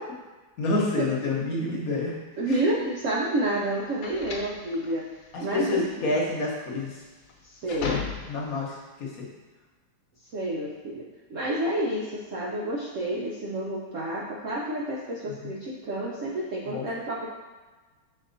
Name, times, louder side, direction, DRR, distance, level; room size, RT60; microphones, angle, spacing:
voice 1, 0.6-2.2 2.5-2.6 5.3-7.0 7.8-8.0 8.2-9.3 15.4-15.5 16.7-16.8, left 2 dB, 50° left, -3 dB, 1.3 m, -28 dB
voice 2, 2.4-5.8 7.4-7.9 10.3-11.0 11.3-17.3, right 1 dB, 75° right, -3 dB, 0.7 m, -29 dB
sound 1, 2.6-8.6, left 5 dB, 70° left, 1.4 m, -37 dB
6.2 x 4.1 x 3.9 m, 1.3 s
omnidirectional pair, 2.2 m